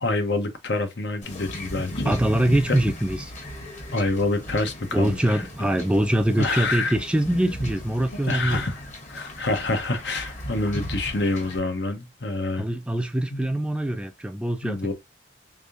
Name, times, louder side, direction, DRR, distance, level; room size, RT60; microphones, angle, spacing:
voice 1, 0.0-2.2 2.7-2.8 3.9-5.7 6.4-6.9 8.3-8.8 9.1-12.6 13.3-13.5 14.6-14.9, left 2 dB, 65° left, 0.9 m, -27 dB
Wind / Ocean / Boat Water vehicle, 1.2-11.6, equal, 40° left, 1.5 m, -36 dB
voice 2, 2.1-3.3 4.9-8.6 12.6-14.9, right 1 dB, 5° right, 0.4 m, -23 dB
3.5 x 3.5 x 2.5 m
head